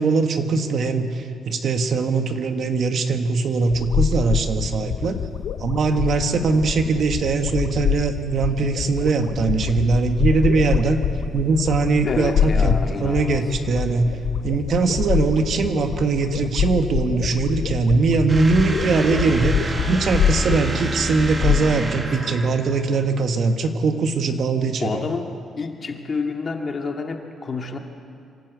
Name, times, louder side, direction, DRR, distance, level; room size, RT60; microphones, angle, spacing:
voice 1, 0.0-5.2 5.6-11.0 11.3-14.1 14.4-25.0, right 4 dB, 60° right, 6 dB, 1.6 m, -21 dB
sound 1, 3.7-21.6, left 8 dB, 70° left, 0.7 m, -25 dB
voice 2, 12.0-13.5 22.1-22.2 24.8-25.3 25.6-27.8, left 4 dB, 40° left, 3 dB, 2.2 m, -28 dB
sound 2, 18.3-23.0, right 2 dB, 25° right, 1.9 m, -29 dB
25.0 x 12.0 x 8.5 m, 2.4 s
cardioid pair, 90°, 0 cm